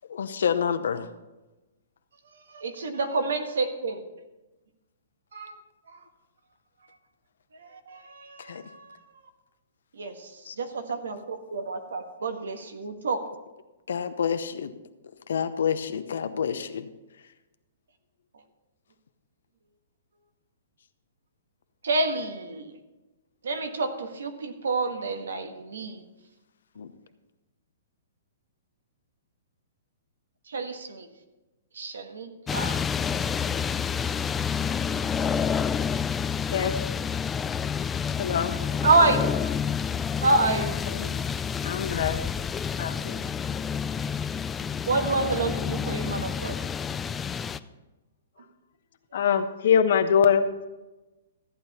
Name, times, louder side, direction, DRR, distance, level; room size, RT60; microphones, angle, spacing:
voice 1, 0.1-1.1 8.4-8.6 10.4-10.6 13.9-14.7 15.3-16.9 26.8-26.9, left 7 dB, 80° left, 11 dB, 0.8 m, -28 dB
voice 2, 2.5-4.0 5.3-5.5 7.9-8.9 10.0-10.1 10.6-13.2 21.8-22.7 23.4-26.0 30.5-31.1 31.8-32.8 38.8-39.3 40.2-40.8 44.9-46.6, right 3 dB, 85° right, 6 dB, 1.5 m, -27 dB
sound 1, 32.5-47.6, left 7 dB, 10° left, 0.3 m, -29 dB
voice 3, 38.2-38.6 40.9-41.1 41.6-42.2 42.8-43.3 49.1-50.7, left 7 dB, 60° left, 8 dB, 1.1 m, -23 dB
14.0 x 8.9 x 4.2 m, 1.1 s
hypercardioid pair, 150°, 0 cm